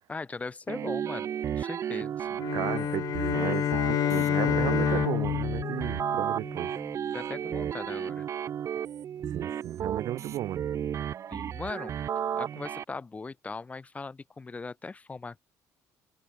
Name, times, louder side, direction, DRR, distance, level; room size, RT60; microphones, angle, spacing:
voice 1, 0.1-2.4 7.1-8.2 9.8-9.9 11.3-11.9 12.3-15.4, left 4 dB, 20° left, 1.3 m, -39 dB
sound 1, 0.7-12.8, right 9 dB, 45° right, 0.8 m, -33 dB
sound 2, 2.4-6.8, left 12 dB, 60° left, 0.9 m, -29 dB
voice 2, 2.5-6.8 9.3-10.6, right 14 dB, 65° right, 1.5 m, -34 dB
cardioid pair, 115°, 7 cm